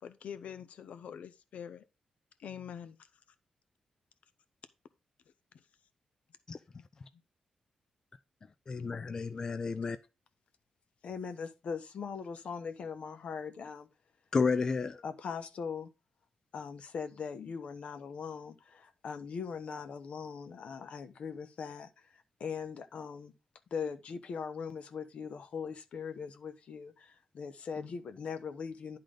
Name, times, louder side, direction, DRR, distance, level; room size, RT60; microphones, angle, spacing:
voice 1, 0.0-1.8 2.4-3.1, left 8 dB, 75° left, 0.6 m, -45 dB
voice 2, 8.7-10.0 14.3-15.0, left 4 dB, 30° left, 0.4 m, -31 dB
voice 3, 11.0-13.9 15.0-15.9 16.5-21.9 22.4-23.3 23.7-29.0, left 6 dB, 60° left, 1.0 m, -40 dB
11.0 x 3.8 x 5.0 m
wide cardioid pair, 180°, 2 cm